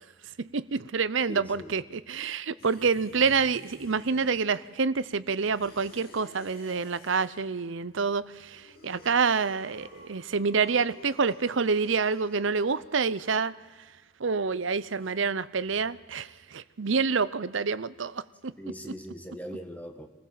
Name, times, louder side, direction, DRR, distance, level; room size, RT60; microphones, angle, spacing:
voice 1, 0.4-13.5 14.2-18.5, right 5 dB, 70° right, 0.7 m, -27 dB
voice 2, 1.3-1.7 18.6-20.1, equal, 5° left, 1.6 m, -40 dB
sound 1, 2.6-4.8 5.4-7.6 8.3-13.0, left 2 dB, 45° left, 4.8 m, -52 dB
26.0 x 15.5 x 7.6 m
head